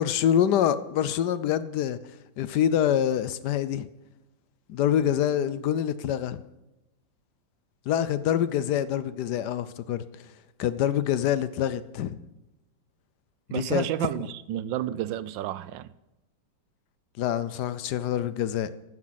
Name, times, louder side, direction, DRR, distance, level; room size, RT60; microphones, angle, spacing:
voice 1, 0.0-2.0 2.4-3.9 4.7-6.4 7.9-10.0 10.6-12.2 13.5-13.9 17.2-18.7, left 10 dB, 70° left, 1.2 m, -25 dB
voice 2, 13.5-15.9, right 12 dB, 80° right, 1.3 m, -31 dB
14.5 x 12.0 x 4.1 m
omnidirectional pair, 2.0 m